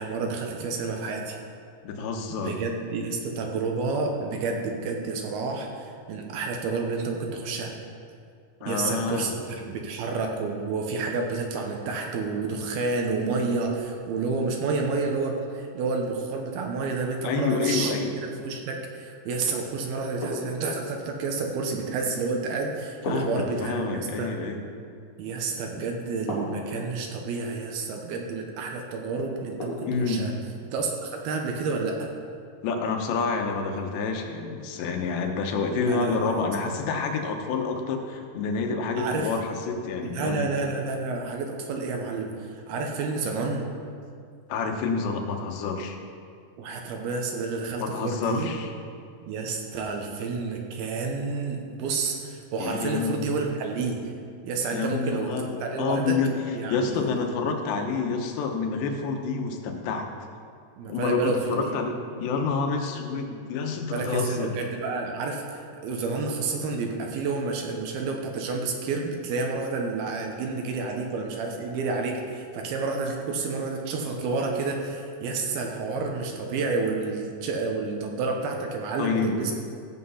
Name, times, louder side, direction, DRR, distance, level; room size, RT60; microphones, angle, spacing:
voice 1, 0.0-1.4 2.3-7.7 8.7-17.9 18.2-24.3 25.2-30.3 30.7-32.1 35.7-36.8 39.0-39.3 40.0-43.7 46.6-48.5 49.3-54.1 54.4-56.2 56.5-57.3 60.8-61.7 63.9-79.5, right 4 dB, 75° right, 2 dB, 2.7 m, -30 dB
voice 2, 1.8-2.6 8.6-9.3 17.2-18.1 23.0-24.6 29.9-30.2 32.6-40.5 44.5-46.0 47.8-48.7 52.6-53.3 54.7-56.3 56.7-60.1 60.9-64.5 79.0-79.3, left 4 dB, 85° left, 3 dB, 3.3 m, -28 dB
sound 1, 20.2-21.0 23.1-24.1 26.3-27.0 29.6-30.2, equal, 35° left, 3.1 m, -34 dB
14.0 x 7.9 x 5.6 m, 2.3 s
omnidirectional pair, 4.9 m